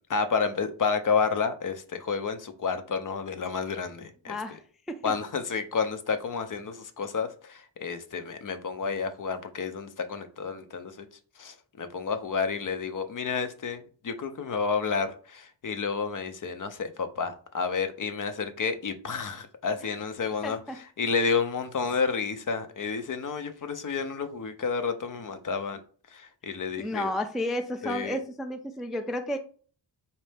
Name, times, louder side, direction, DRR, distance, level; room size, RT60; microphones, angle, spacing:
voice 1, 0.1-4.4 5.0-11.1 11.4-20.6 21.0-25.8 26.1-27.1 27.8-28.2, left 5 dB, 45° left, 0.6 m, -30 dB
voice 2, 4.3-4.6 5.0-5.1 20.4-20.8 26.5-29.4, left 1 dB, ahead, 0.3 m, -32 dB
4.2 x 2.6 x 3.3 m
cardioid pair, 75°, 44 cm